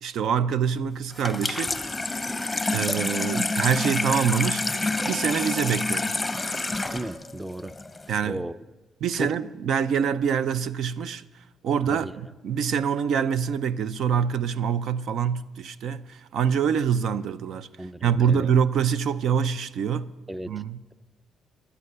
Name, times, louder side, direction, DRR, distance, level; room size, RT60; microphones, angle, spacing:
voice 1, 0.0-1.7 2.7-6.2 8.1-8.4 9.0-11.2 11.6-17.7 18.0-20.1 20.5-20.8, right 7 dB, 70° right, 0.6 m, -25 dB
Water tap faucet / Sink (filling or washing), 1.1-8.2, left 2 dB, 15° left, 0.8 m, -28 dB
sound 1, 1.1-7.1, right 1 dB, 25° right, 5.6 m, -43 dB
voice 2, 6.9-7.7 8.2-8.5 9.1-9.4 11.9-12.1 17.8-18.5 20.3-20.5, right 1 dB, 10° right, 0.5 m, -34 dB
16.0 x 11.5 x 6.8 m
cardioid pair, 90°, 0 cm